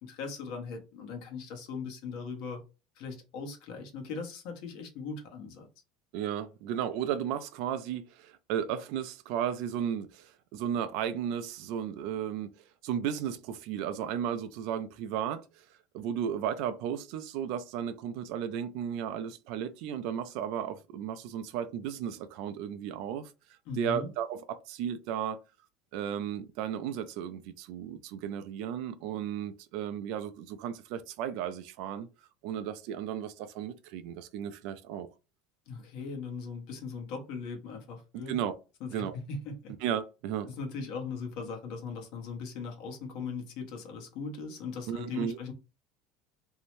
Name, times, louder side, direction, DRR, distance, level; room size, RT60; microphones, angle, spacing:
voice 1, 0.0-2.6 3.0-5.7 23.7-24.1 35.7-38.4 38.8-39.7 40.4-45.5, left 5 dB, 55° left, 0.9 m, -39 dB
voice 2, 6.1-12.5 12.8-15.7 15.9-23.3 23.7-25.4 25.9-32.1 32.4-35.1 38.3-38.5 38.9-39.2 39.8-40.6 44.9-45.4, right 9 dB, 60° right, 0.3 m, -34 dB
2.6 x 2.1 x 3.0 m
cardioid pair, 165°, 0 cm